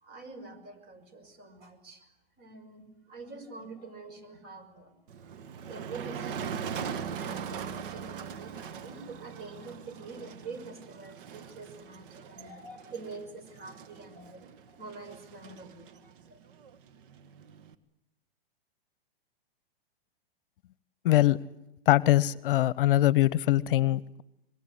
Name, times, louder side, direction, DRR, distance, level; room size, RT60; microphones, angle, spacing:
voice 1, 0.0-2.1 2.4-4.9 5.2-5.3 5.7-16.4, right 3 dB, 30° right, 10 dB, 5.8 m, -46 dB
Motor vehicle (road), 5.1-17.7, right 7 dB, 60° right, 1.8 m, -41 dB
voice 2, 21.0-21.4 21.9-24.2, left 14 dB, 60° left, 20 dB, 0.9 m, -23 dB
25.5 x 21.5 x 9.6 m, 0.88 s
hypercardioid pair, 125°, 30 cm